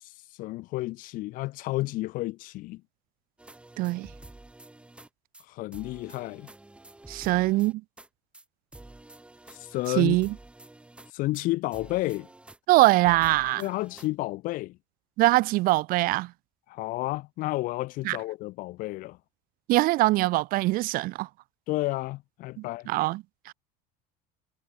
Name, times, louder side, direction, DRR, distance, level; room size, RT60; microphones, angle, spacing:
voice 1, 0.0-2.8 5.5-6.5 9.5-10.2 11.1-12.3 13.6-14.8 16.7-19.2 21.7-22.9, left 19 dB, 50° left, 0.7 m, -31 dB
sound 1, 3.4-5.1 5.3-5.5 5.7-8.1 8.3-8.5 8.7-11.5 11.7-12.6 12.8-14.1, right 2 dB, 5° right, 5.5 m, -49 dB
voice 2, 3.8-4.1 7.1-7.8 10.0-10.3 12.7-13.6 15.2-16.3 18.0-18.2 19.7-21.3 22.9-23.5, right 19 dB, 50° right, 1.2 m, -23 dB
cardioid pair, 160°, 18 cm